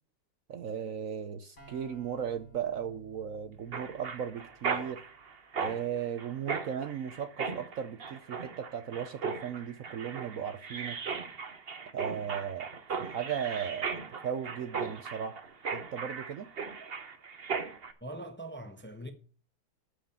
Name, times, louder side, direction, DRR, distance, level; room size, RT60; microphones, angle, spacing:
voice 1, 0.5-5.0 5.6-11.0 11.9-12.7 13.0-14.0 14.2-15.4 15.7-16.5, right 8 dB, 60° right, 1.0 m, -36 dB
sound 1, 1.6-5.2, right 2 dB, 40° left, 3.7 m, -58 dB
Mechanisms, 3.7-17.9, right 5 dB, 40° right, 1.1 m, -37 dB
voice 2, 18.0-19.1, right 1 dB, 10° left, 0.8 m, -42 dB
12.5 x 5.1 x 8.0 m
omnidirectional pair, 1.9 m